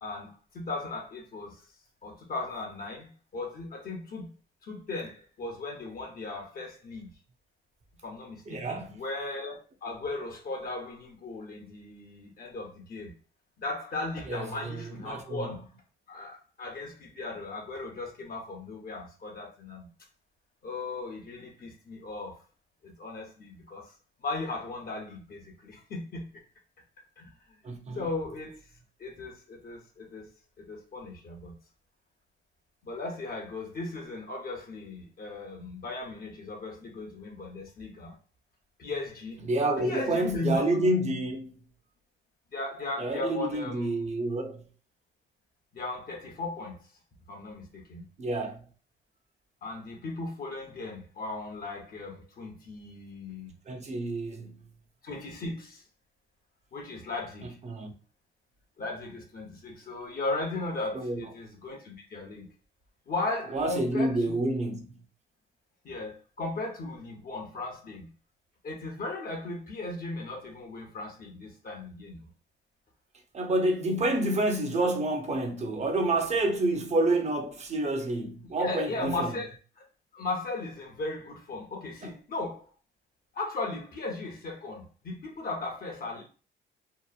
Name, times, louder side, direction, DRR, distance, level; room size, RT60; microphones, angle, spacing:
voice 1, 0.0-1.6 2.0-4.3 4.6-7.1 8.0-13.1 13.6-15.6 16.1-19.9 20.6-22.4 22.8-23.9 24.2-26.4 27.2-27.3 27.9-28.7 29.0-30.3 30.6-31.5 32.8-38.1 38.8-39.4 39.8-40.6 42.5-44.1 45.7-46.8 47.3-48.1 49.6-53.5 55.0-55.8 56.7-57.6 58.8-62.5 63.1-64.5 65.8-68.1 68.6-72.2 78.6-79.9 80.1-82.7 83.3-86.2, left 2 dB, 50° left, 0.8 m, -37 dB
voice 2, 8.5-9.0 14.3-15.6 27.6-28.1 39.4-41.6 43.0-44.6 48.2-48.6 53.7-54.6 57.6-57.9 60.9-61.3 63.5-64.9 73.3-79.3 82.0-82.1, right 2 dB, 35° right, 0.6 m, -29 dB
2.9 x 2.0 x 2.4 m
cardioid pair, 90°, 20 cm